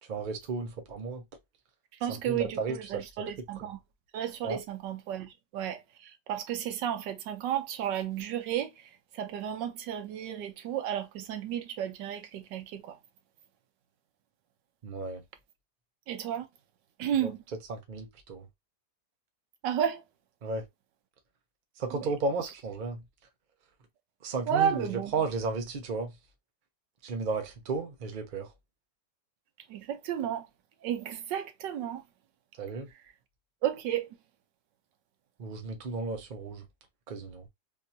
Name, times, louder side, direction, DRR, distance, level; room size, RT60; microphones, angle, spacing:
voice 1, 0.0-1.2 2.1-3.1 4.4-4.6 14.8-15.2 17.2-17.3 17.7-18.5 20.4-20.7 21.8-23.0 24.2-26.2 27.0-28.5 32.6-32.9 35.4-36.6 37.1-37.5, right 4 dB, 60° right, 0.5 m, -34 dB
voice 2, 2.0-3.8 4.1-13.0 16.1-16.5 17.0-17.4 19.6-20.0 21.9-22.1 24.5-25.1 29.7-30.5 30.8-32.0 33.6-34.1, right 9 dB, 85° right, 1.4 m, -33 dB
3.5 x 2.7 x 2.7 m
omnidirectional pair, 1.9 m